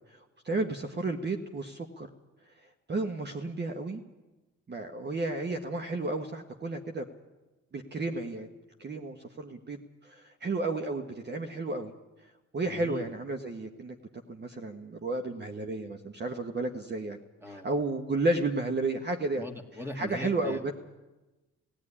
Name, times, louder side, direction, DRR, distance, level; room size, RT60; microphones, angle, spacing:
voice 1, 0.1-2.1 2.9-4.0 4.7-7.0 7.7-8.5 8.8-11.9 12.5-14.0 14.3-17.2 17.5-19.4 19.9-20.7, right 2 dB, 35° right, 4 dB, 1.4 m, -32 dB
voice 2, 12.6-13.1 17.4-17.7 19.4-20.7, left 1 dB, 10° right, 5 dB, 2.2 m, -41 dB
17.0 x 15.5 x 10.0 m, 1.1 s
cardioid pair, 90°, 30 cm